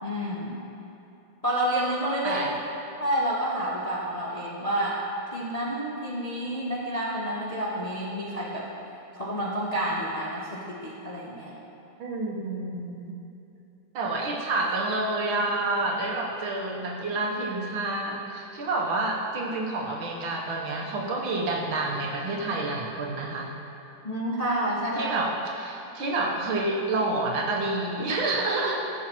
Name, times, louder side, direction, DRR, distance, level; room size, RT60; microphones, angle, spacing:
voice 1, 0.0-0.6 1.4-2.4 3.0-5.0 5.3-8.7 9.2-11.5 24.0-25.1 28.1-28.2, right 1 dB, 35° left, -6 dB, 0.6 m, -29 dB
voice 2, 12.0-13.1 13.9-23.5 25.0-28.8, right 2 dB, 80° right, -1 dB, 1.9 m, -28 dB
14.5 x 7.0 x 3.0 m, 2.9 s
omnidirectional pair, 2.2 m